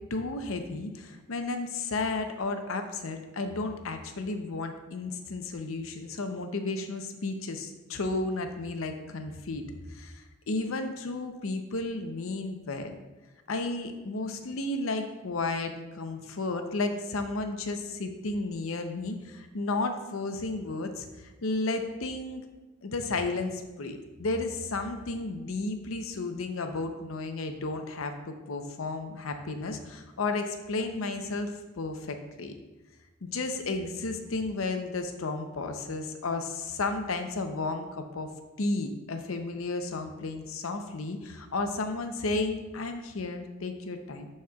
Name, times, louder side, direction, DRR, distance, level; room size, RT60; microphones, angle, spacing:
voice 1, 0.1-9.6 9.9-12.9 13.5-21.1 21.4-22.4 22.8-32.6 33.2-38.3 38.6-44.3, left 3 dB, 90° left, 6 dB, 0.7 m, -33 dB
11.0 x 4.3 x 2.3 m, 1.1 s
head